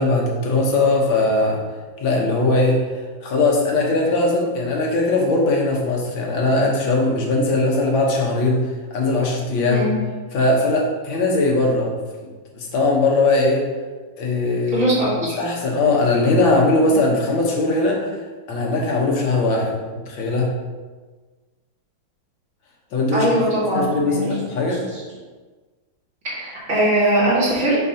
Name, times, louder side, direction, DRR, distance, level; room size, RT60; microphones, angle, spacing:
voice 1, 0.0-1.6 2.0-9.9 10.3-11.9 12.5-13.6 14.2-15.0 15.4-18.1 18.5-20.5 22.9-23.3 23.7-24.2 24.5-24.8, left 2 dB, 75° left, -1 dB, 1.8 m, -20 dB
voice 2, 9.7-10.0 14.7-15.4 16.9-17.0 23.1-24.4 24.9-25.0 26.2-27.8, right 1 dB, 40° right, -7 dB, 2.2 m, -21 dB
6.5 x 5.3 x 2.8 m, 1.3 s
omnidirectional pair, 2.2 m